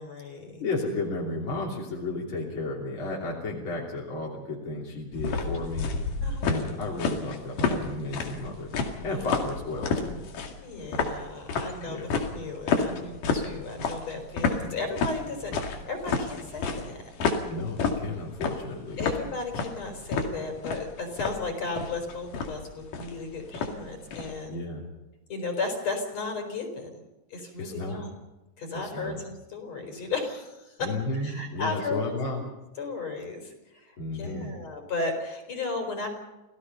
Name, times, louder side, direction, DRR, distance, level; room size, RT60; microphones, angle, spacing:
voice 1, 0.0-0.6 6.2-6.7 9.1-9.4 10.6-17.1 19.0-24.7 25.3-26.9 27.3-28.1 28.6-32.4 32.8-36.1, left 3 dB, 55° left, 3 dB, 5.4 m, -35 dB
voice 2, 0.6-6.0 6.4-8.7 9.0-10.2 11.9-12.1 17.5-19.0 24.5-24.8 27.6-28.0 28.7-29.2 30.8-32.4 34.0-34.5, left 2 dB, 40° left, -3 dB, 3.7 m, -33 dB
sound 1, 5.1-24.4, left 4 dB, 90° left, 3.9 m, -30 dB
29.0 x 17.5 x 5.6 m, 1.0 s
omnidirectional pair, 3.6 m